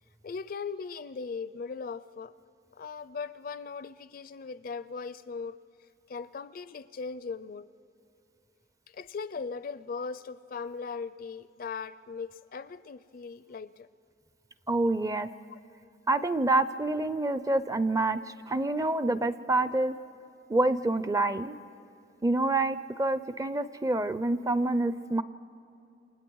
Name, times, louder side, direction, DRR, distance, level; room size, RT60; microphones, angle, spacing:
voice 1, 0.2-2.3 2.7-5.6 6.1-7.7 8.9-13.9 15.5-15.6, left 5 dB, 50° left, 16 dB, 0.4 m, -39 dB
voice 2, 14.7-15.3 16.1-20.0 20.5-21.5 22.2-25.2, right 2 dB, 20° right, 13 dB, 0.5 m, -27 dB
28.5 x 27.0 x 4.7 m, 2.7 s
head